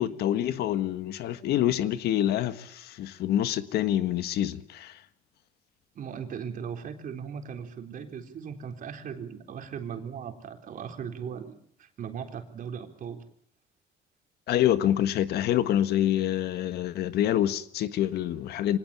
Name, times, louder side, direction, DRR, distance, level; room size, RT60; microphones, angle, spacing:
voice 1, 0.0-5.0 14.5-18.8, left 11 dB, 75° left, 1.5 m, -26 dB
voice 2, 6.0-13.2, right 7 dB, 55° right, 4.0 m, -38 dB
24.5 x 18.5 x 8.6 m
cardioid pair, 110°, 17 cm